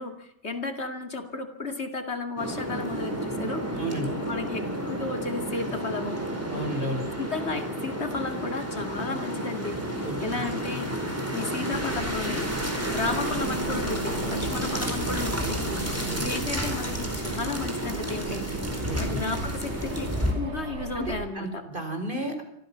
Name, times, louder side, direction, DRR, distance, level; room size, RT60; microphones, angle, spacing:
voice 1, 0.0-3.8 4.2-6.2 7.2-10.9 11.3-12.5 12.9-15.6 16.1-18.5 18.9-21.6, left 3 dB, 65° left, 6 dB, 2.7 m, -33 dB
sound 1, 2.4-20.3, right 1 dB, 10° right, 4.5 m, -31 dB
voice 2, 3.7-4.1 6.5-7.0 10.0-10.4 15.7-16.3 18.9-19.2 20.9-21.5 21.7-22.4, right 1 dB, 45° right, 5 dB, 4.8 m, -33 dB
sound 2, 11.7-21.3, right 3 dB, 70° right, 1.7 m, -39 dB
24.5 x 15.0 x 7.3 m, 0.74 s
omnidirectional pair, 1.2 m